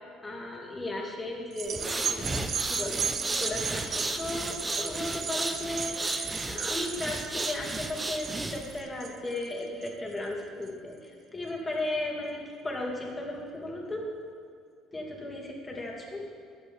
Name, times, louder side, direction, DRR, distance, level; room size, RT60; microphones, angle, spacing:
voice 1, 0.0-14.1 14.9-16.2, left 1 dB, 20° left, -2 dB, 2.5 m, -36 dB
sound 1, 1.5-10.2 10.7-10.8, right 7 dB, 45° right, 0.6 m, -36 dB
sound 2, 1.7-8.8, right 2 dB, 15° right, 0.9 m, -34 dB
20.0 x 8.2 x 3.6 m, 2.3 s
cardioid pair, 100°, 0 cm